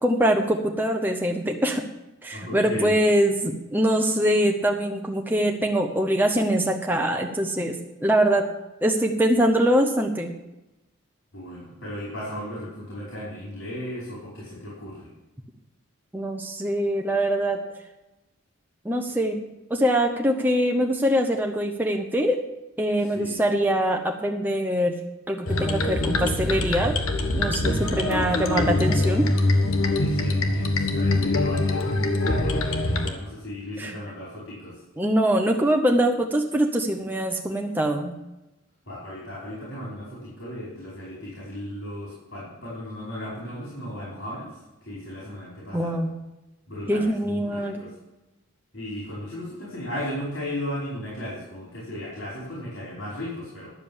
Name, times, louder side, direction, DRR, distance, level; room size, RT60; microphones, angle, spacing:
voice 1, 0.0-1.8 2.2-8.5 8.8-10.3 16.1-17.6 18.8-19.4 19.7-22.4 22.8-24.9 25.3-27.0 27.3-29.3 33.8-34.0 35.0-38.1 45.7-46.1 46.9-47.8, equal, 10° right, 2 dB, 0.7 m, -23 dB
voice 2, 2.3-3.0 11.3-15.1 23.0-23.4 27.6-28.4 29.8-34.8 38.9-44.5 44.9-46.0 46.7-47.9 48.7-53.7, left 1 dB, 70° left, -6 dB, 4.8 m, -36 dB
sound 1, 25.5-33.1, left 2 dB, 85° left, 1.3 m, -23 dB
11.0 x 7.4 x 7.2 m, 0.98 s
head